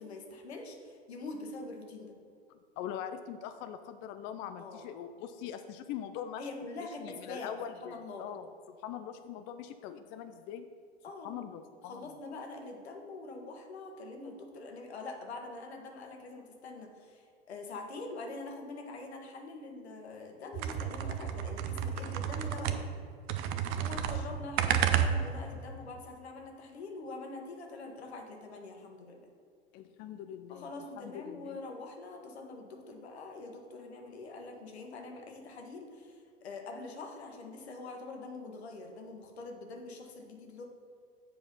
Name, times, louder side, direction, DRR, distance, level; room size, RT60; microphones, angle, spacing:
voice 1, 0.0-2.1 4.6-4.9 6.4-7.5 7.8-8.3 11.0-11.4 11.8-22.9 23.8-29.3 30.5-40.6, left 3 dB, 75° left, 3 dB, 1.4 m, -44 dB
voice 2, 2.5-6.5 7.0-10.7 11.2-12.0 24.0-24.2 29.7-30.7 31.0-31.6, left 9 dB, 35° left, 9 dB, 0.4 m, -42 dB
sound 1, 20.5-23.0 23.3-25.5, right 9 dB, 40° right, 0.7 m, -31 dB
7.8 x 4.8 x 5.4 m, 2.4 s
hypercardioid pair, 100°, 32 cm